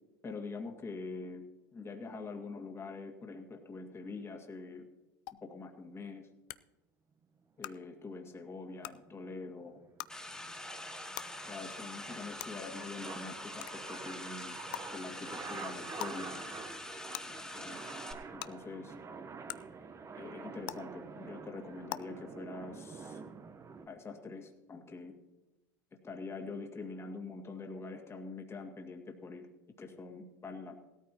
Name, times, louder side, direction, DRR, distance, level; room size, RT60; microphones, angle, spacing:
voice 1, 0.2-1.4 1.7-4.9 5.4-6.3 7.6-9.8 11.5-14.5 14.9-16.4 17.6-17.8 18.3-18.9 20.2-23.2 23.9-25.1 26.0-29.4 29.8-30.8, left 3 dB, 25° left, 3 dB, 2.1 m, -44 dB
sound 1, 5.3-5.4 6.5-6.6 7.6-7.7 8.8-8.9 10.0-10.1 11.1-11.2 12.4-12.5 13.6-13.7 14.7-14.8 16.0-16.1 17.1-17.2 18.4-18.5 19.5-19.6 20.6-20.7 21.9-22.0, left 18 dB, 65° left, 0.5 m, -39 dB
sound 2, 8.5-23.9, right 5 dB, 30° right, 1.0 m, -48 dB
sound 3, 10.1-18.1, left 1 dB, 5° left, 2.2 m, -45 dB
17.0 x 13.0 x 2.9 m, 1.1 s
hypercardioid pair, 85°, 11 cm